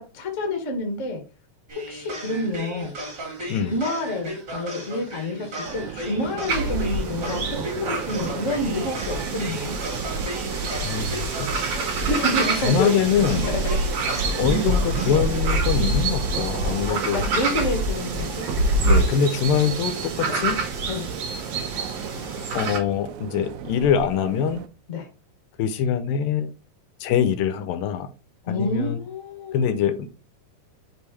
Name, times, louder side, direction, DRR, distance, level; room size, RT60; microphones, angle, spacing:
voice 1, 0.1-1.2 1.9-2.9 3.4-9.8 12.1-13.8 16.9-18.5 20.2-20.4 20.9-21.0 24.9-25.1 28.4-29.8, left 1 dB, 45° left, 0.9 m, -28 dB
sound 1, 1.7-15.4, right 1 dB, 35° right, 2.6 m, -35 dB
sound 2, 5.6-24.7, right 10 dB, 80° right, 1.7 m, -36 dB
sound 3, 6.5-22.8, right 2 dB, 55° right, 2.3 m, -26 dB
voice 2, 10.8-11.3 12.6-13.6 14.4-17.2 18.8-20.6 22.5-24.6 25.6-26.5 27.0-28.1 28.5-29.0 29.5-30.1, left 8 dB, 90° left, 2.5 m, -23 dB
6.8 x 3.4 x 4.1 m
omnidirectional pair, 4.0 m